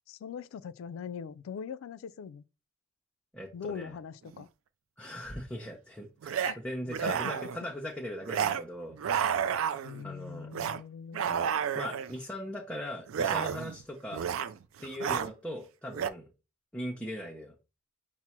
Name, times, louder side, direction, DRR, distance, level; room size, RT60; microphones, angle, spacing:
voice 1, 0.1-2.4 3.5-4.5 6.4-6.6 9.8-11.4, left 6 dB, 80° left, 0.3 m, -41 dB
voice 2, 3.3-4.0 5.0-9.0 10.0-10.5 11.7-14.3 14.8-16.3 16.7-17.5, equal, 5° left, 0.6 m, -39 dB
sound 1, 4.3-4.4 6.2-6.5 6.9-7.6 8.3-8.6 8.9-10.0 10.5-10.8 11.1-12.1 13.1-13.8 14.1-14.5 14.8-15.3 15.9-16.1, right 8 dB, 85° right, 0.3 m, -31 dB
5.9 x 2.0 x 4.3 m
head